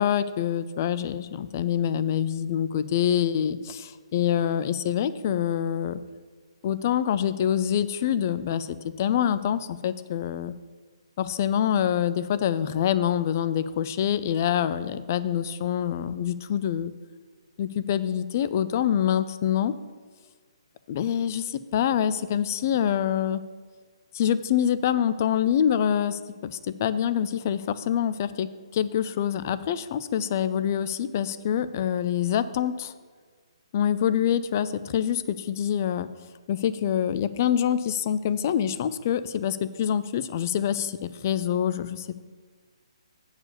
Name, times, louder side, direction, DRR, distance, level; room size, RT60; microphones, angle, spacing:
voice 1, 0.0-6.0 6.6-10.5 11.2-16.9 17.6-19.7 20.9-23.4 24.1-32.9 33.7-36.1 36.5-42.2, left 9 dB, 30° left, 14 dB, 0.3 m, -26 dB
8.4 x 4.8 x 7.0 m, 1.5 s
hypercardioid pair, 170°, 3 cm